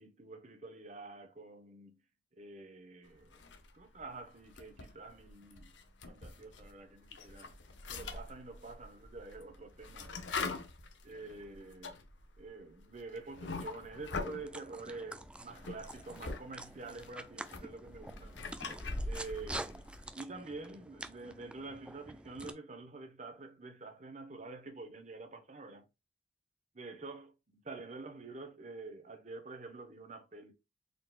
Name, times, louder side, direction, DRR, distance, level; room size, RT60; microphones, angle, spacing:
voice 1, 0.0-1.9 2.3-3.4 3.7-5.7 6.1-7.6 7.9-10.3 11.0-12.0 12.4-18.4 19.0-19.9 20.1-25.8 26.7-30.5, right 3 dB, 40° right, 1.0 m, -47 dB
sound 1, 3.3-4.0 4.4-6.7 7.0-14.5 15.2-16.4 16.7-20.1, left 3 dB, 85° left, 0.8 m, -43 dB
sound 2, 14.2-22.5, right 1 dB, 5° right, 0.3 m, -47 dB
4.2 x 3.9 x 2.3 m
head